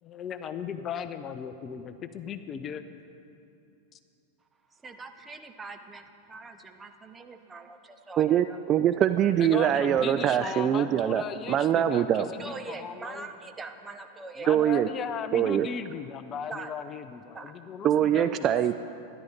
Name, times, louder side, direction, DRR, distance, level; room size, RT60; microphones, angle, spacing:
voice 1, 0.0-2.9 3.9-4.0 9.3-13.3 14.4-18.5, left 7 dB, 30° left, 10 dB, 0.6 m, -37 dB
voice 2, 4.7-8.6 12.4-14.5 16.5-16.7 17.3-17.7, right 3 dB, 15° right, 6 dB, 0.8 m, -43 dB
voice 3, 8.2-11.2 11.5-12.3 14.5-14.9 15.3-15.7 17.8-18.8, right 10 dB, 30° right, 10 dB, 0.3 m, -23 dB
12.5 x 11.0 x 5.2 m, 2.7 s
figure-of-eight pair, 90°, 0 cm